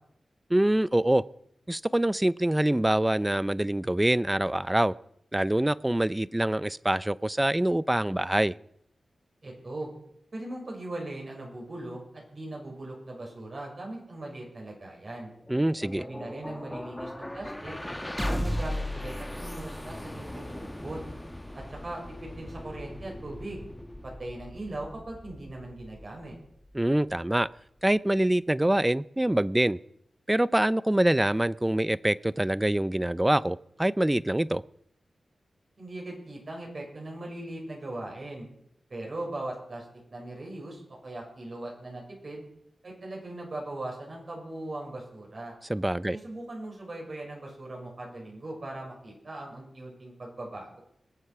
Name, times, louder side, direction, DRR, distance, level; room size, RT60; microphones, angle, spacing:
voice 1, 0.5-1.2 1.7-4.9 5.3-8.5 15.5-16.0 26.7-27.5 27.8-29.8 30.3-34.6 45.7-46.2, right 1 dB, 15° right, 0.6 m, -25 dB
voice 2, 9.4-9.9 10.3-15.3 15.8-17.8 18.2-21.0 21.5-23.6 24.0-26.3 35.8-38.5 38.9-42.4 42.8-45.5 46.1-50.8, right 2 dB, 55° right, 6.4 m, -39 dB
sound 1, 15.2-27.3, left 1 dB, 15° left, 1.8 m, -37 dB
20.5 x 8.0 x 6.0 m
cardioid pair, 40°, 0 cm